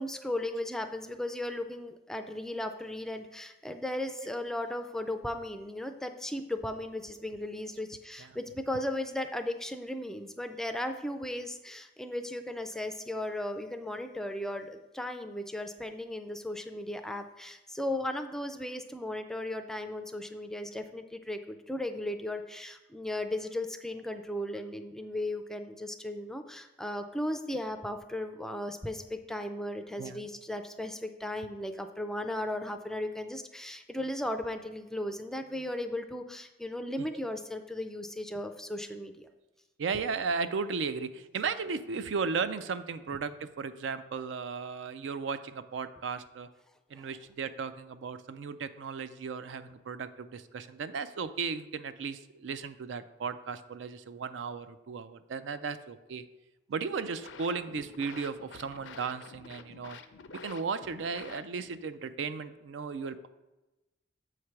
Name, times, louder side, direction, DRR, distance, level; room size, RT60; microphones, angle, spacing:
voice 1, 0.0-39.3 46.9-47.1, left 1 dB, 5° left, 7 dB, 0.3 m, -36 dB
voice 2, 39.8-46.5 46.9-56.3 56.7-60.0 60.4-63.3, right 5 dB, 80° right, 12 dB, 0.4 m, -35 dB
sound 1, 56.9-61.8, left 5 dB, 85° left, 0.5 m, -49 dB
7.4 x 3.2 x 5.8 m, 1.0 s
head